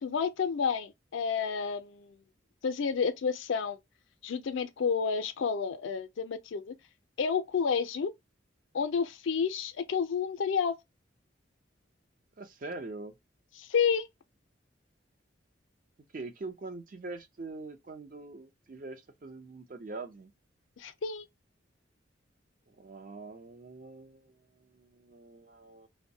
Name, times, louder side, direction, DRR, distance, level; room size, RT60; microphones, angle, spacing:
voice 1, 0.0-2.2 2.6-3.8 4.2-6.8 7.2-8.1 8.7-10.8 13.6-14.1 20.8-21.3, left 6 dB, 80° left, 0.4 m, -30 dB
voice 2, 12.4-13.1 16.1-20.3 22.7-25.9, right 3 dB, 45° right, 0.4 m, -43 dB
2.6 x 2.1 x 2.6 m
head